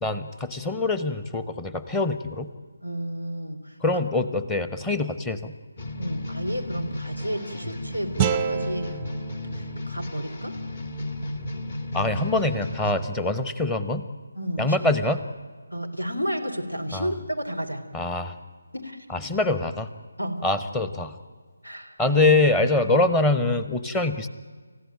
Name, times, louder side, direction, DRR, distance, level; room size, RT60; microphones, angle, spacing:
voice 1, 0.0-2.5 3.8-5.5 11.9-14.0 14.6-15.2 16.9-17.1 17.9-18.3 19.1-19.9 20.4-21.1 22.0-24.3, left 2 dB, 10° left, 12 dB, 0.9 m, -24 dB
voice 2, 2.8-3.8 6.0-9.0 9.6-10.6 14.4-14.8 15.7-17.9 18.7-19.0 20.2-20.5 21.6-22.0, equal, 85° left, 7 dB, 3.3 m, -31 dB
sound 1, 5.8-12.9, left 1 dB, 40° left, 1.9 m, -34 dB
sound 2, 8.2-11.3, right 7 dB, 15° right, 0.7 m, -30 dB
29.5 x 15.0 x 8.9 m, 1.5 s
figure-of-eight pair, 155°, 0 cm